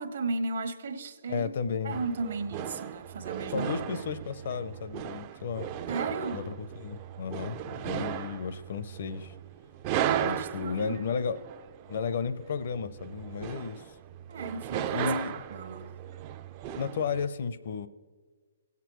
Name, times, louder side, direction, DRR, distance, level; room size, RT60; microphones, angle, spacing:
voice 1, 0.0-1.5 1.8-3.7 5.9-6.4 10.3-11.0 14.3-15.1 15.5-15.9, right 3 dB, 65° right, 1.2 m, -35 dB
voice 2, 1.3-2.0 3.5-5.7 6.3-9.3 10.2-11.4 11.9-14.0 14.9-15.4 16.7-17.9, left 6 dB, 55° left, 0.6 m, -33 dB
sound 1, 1.9-17.3, right 10 dB, 30° right, 0.4 m, -36 dB
17.5 x 8.2 x 3.1 m
hypercardioid pair, 155°, 0 cm